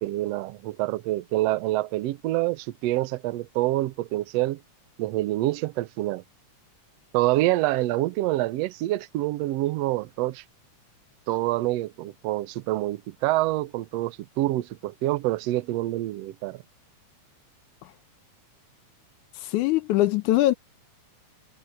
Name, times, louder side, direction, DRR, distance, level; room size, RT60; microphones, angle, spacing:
voice 1, 0.0-4.6 5.0-6.2 7.1-10.4 11.3-16.6, right 16 dB, 75° right, 1.6 m, -26 dB
voice 2, 19.4-20.5, left 15 dB, 80° left, 2.2 m, -22 dB
omnidirectional pair, 3.5 m